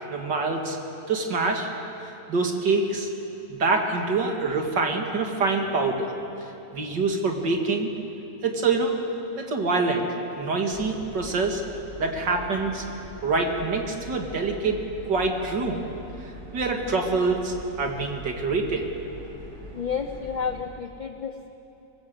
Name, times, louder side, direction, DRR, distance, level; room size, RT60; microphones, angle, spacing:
voice 1, 0.1-0.8 1.1-1.7 2.3-3.1 3.5-6.1 6.7-7.9 8.4-8.9 9.4-10.1 10.4-11.6 12.0-12.8 13.2-15.8 16.5-18.9, right 3 dB, 85° right, 2 dB, 2.9 m, -25 dB
sound 1, 10.7-20.6, left 1 dB, 65° right, 6.7 m, -43 dB
voice 2, 19.7-21.5, left 6 dB, 40° left, 6 dB, 0.7 m, -31 dB
24.5 x 19.5 x 8.1 m, 3.0 s
omnidirectional pair, 1.9 m